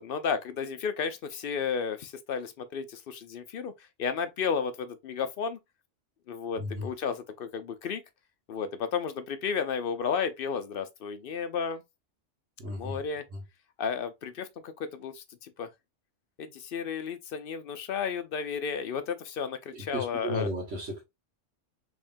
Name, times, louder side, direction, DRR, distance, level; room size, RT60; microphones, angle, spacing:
voice 1, 0.0-3.7 4.0-5.6 6.3-8.0 8.5-11.8 12.7-13.2 13.8-15.7 16.4-20.5, left 6 dB, 60° left, 0.6 m, -33 dB
voice 2, 6.6-6.9 12.6-13.0 13.3-13.4 19.7-21.0, equal, 80° right, 1.7 m, -34 dB
3.6 x 3.4 x 2.5 m
omnidirectional pair, 1.2 m